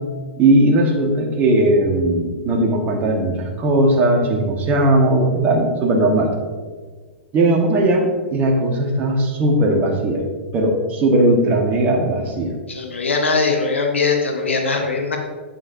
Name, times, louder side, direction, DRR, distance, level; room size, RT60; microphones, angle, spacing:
voice 1, 0.4-6.3 7.3-10.2 10.5-12.5, right 1 dB, 30° right, 1 dB, 1.5 m, -18 dB
voice 2, 12.7-15.2, left 4 dB, 80° left, 2 dB, 1.2 m, -20 dB
8.9 x 7.6 x 2.7 m, 1.5 s
figure-of-eight pair, 110°, 7 cm